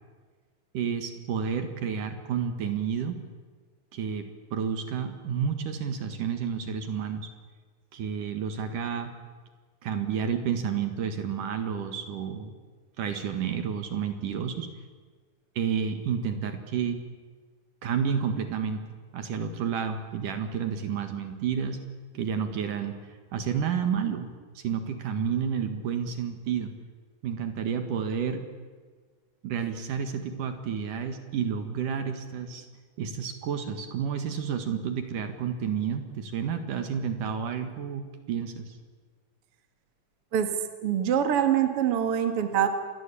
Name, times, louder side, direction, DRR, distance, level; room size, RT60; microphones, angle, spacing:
voice 1, 0.7-3.2 3.9-7.3 7.9-9.1 9.8-12.5 13.0-14.7 15.6-17.0 17.8-18.8 19.1-21.8 22.1-23.0 23.3-24.3 24.6-26.7 27.2-28.5 29.4-32.7 33.0-38.8, right 7 dB, 65° right, 7 dB, 3.0 m, -30 dB
voice 2, 40.8-42.7, right 9 dB, 45° right, 7 dB, 2.4 m, -24 dB
28.0 x 20.5 x 8.5 m, 1.5 s
omnidirectional pair, 4.3 m